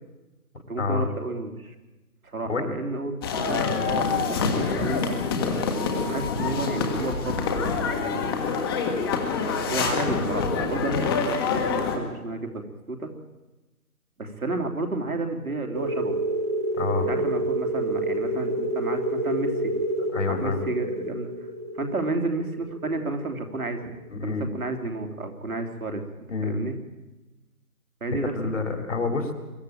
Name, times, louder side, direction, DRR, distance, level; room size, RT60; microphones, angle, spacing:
voice 1, 0.7-1.7 2.2-5.0 6.0-8.4 9.7-12.6 12.9-13.1 14.2-16.2 17.1-19.7 20.3-21.3 21.7-26.0 26.4-26.8 28.0-28.4, right 2 dB, 70° right, 4 dB, 3.3 m, -31 dB
sound 1, 3.2-12.0, left 5 dB, 15° left, 1.6 m, -26 dB
sound 2, 15.7-24.1, right 1 dB, 10° right, 0.6 m, -29 dB
voice 2, 16.8-17.1 20.0-20.6 24.1-24.5 26.3-26.6 28.3-29.3, left 4 dB, 55° left, 6 dB, 3.2 m, -27 dB
23.0 x 13.5 x 8.8 m, 1.1 s
figure-of-eight pair, 145°, 45 cm